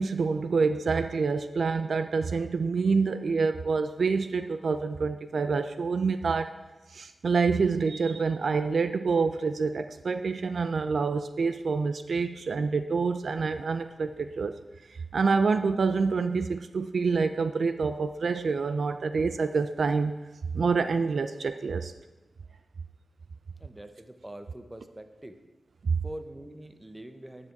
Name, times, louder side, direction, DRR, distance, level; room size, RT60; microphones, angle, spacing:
voice 1, 0.0-6.5 6.9-14.6 14.9-20.1 20.5-21.9 25.8-26.0, right 4 dB, 70° right, 10 dB, 0.4 m, -27 dB
voice 2, 23.6-25.4 26.0-27.5, right 1 dB, 15° right, 8 dB, 0.9 m, -44 dB
9.8 x 9.4 x 4.6 m, 1.2 s
wide cardioid pair, 75°, 0 cm